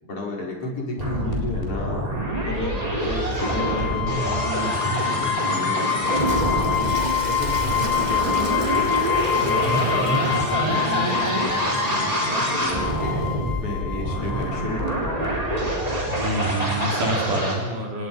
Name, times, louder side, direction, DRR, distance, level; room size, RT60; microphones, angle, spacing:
voice 1, 0.0-2.1 2.4-8.9 9.4-13.2 13.6-15.7, left 1 dB, 45° left, -1 dB, 5.1 m, -32 dB
sound 1, 1.0-17.5, right 1 dB, 10° right, 4.1 m, -26 dB
sound 2, 3.4-14.8, left 11 dB, 85° left, 2.9 m, -27 dB
Toilet flush, 6.0-13.5, right 2 dB, 50° right, 0.5 m, -33 dB
voice 2, 16.1-18.1, right 1 dB, 75° right, 0 dB, 5.4 m, -27 dB
29.5 x 18.5 x 5.4 m, 1.2 s
omnidirectional pair, 3.7 m